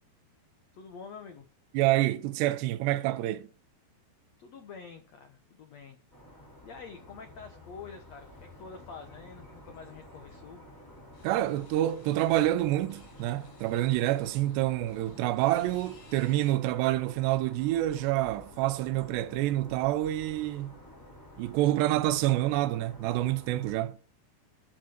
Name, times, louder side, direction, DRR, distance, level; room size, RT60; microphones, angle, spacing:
voice 1, 0.7-1.4 4.4-6.0 6.6-10.6, left 5 dB, 75° left, 1.5 m, -47 dB
voice 2, 1.7-3.5 11.2-20.8 21.4-24.0, right 15 dB, 85° right, 2.9 m, -27 dB
sound 1, 6.1-23.8, left 1 dB, 5° left, 3.9 m, -51 dB
sound 2, 11.1-12.5 12.9-16.6, left 5 dB, 50° left, 4.6 m, -60 dB
10.5 x 7.7 x 6.0 m
omnidirectional pair, 4.8 m